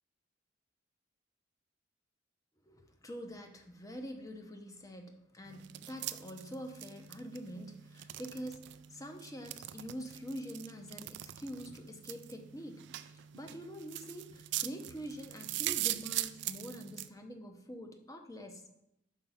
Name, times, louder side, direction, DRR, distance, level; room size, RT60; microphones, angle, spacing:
voice 1, 2.7-18.7, equal, 20° left, 5 dB, 0.7 m, -45 dB
sound 1, 5.5-17.1, right 14 dB, 65° right, 0.3 m, -42 dB
5.7 x 4.8 x 5.5 m, 0.81 s
head